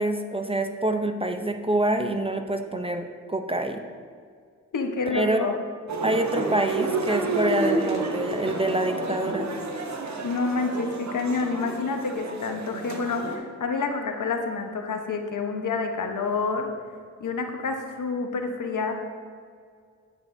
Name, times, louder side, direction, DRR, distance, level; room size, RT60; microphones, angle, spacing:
voice 1, 0.0-3.8 5.1-5.5 6.0-9.5, right 1 dB, 15° right, 6 dB, 0.6 m, -26 dB
voice 2, 4.7-5.6 10.2-16.7 17.2-19.0, left 4 dB, 65° left, 4 dB, 1.0 m, -28 dB
sound 1, 5.9-13.4, right 2 dB, 55° right, 1.0 m, -30 dB
9.0 x 8.1 x 2.6 m, 2.1 s
cardioid pair, 50°, 33 cm